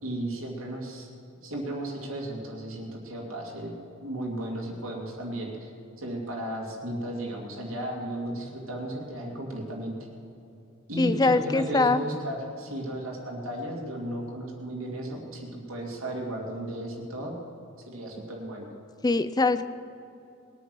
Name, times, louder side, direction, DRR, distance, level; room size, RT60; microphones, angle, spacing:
voice 1, 0.0-1.1 1.4-3.7 4.0-10.0 10.9-17.3 17.8-18.7, right 1 dB, 65° right, -1 dB, 2.3 m, -34 dB
voice 2, 11.0-12.0 19.0-19.7, left 3 dB, 15° left, 13 dB, 0.4 m, -23 dB
20.5 x 9.2 x 6.2 m, 2.7 s
head